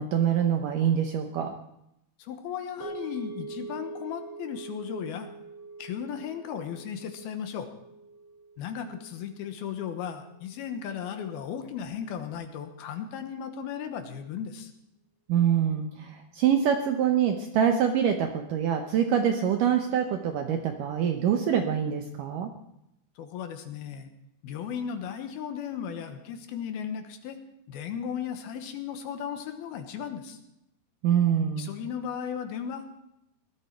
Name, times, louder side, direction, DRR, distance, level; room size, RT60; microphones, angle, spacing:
voice 1, 0.0-1.5 15.3-22.5 31.0-31.7, right 8 dB, 75° right, 5 dB, 2.0 m, -25 dB
voice 2, 2.2-5.3 5.8-7.7 8.6-14.7 23.2-24.1 24.4-27.4 27.7-30.4 31.6-33.0, left 8 dB, 75° left, 7 dB, 2.9 m, -36 dB
sound 1, 2.8-11.1, right 3 dB, 40° right, 5.2 m, -44 dB
18.5 x 12.5 x 4.5 m, 0.81 s
omnidirectional pair, 4.8 m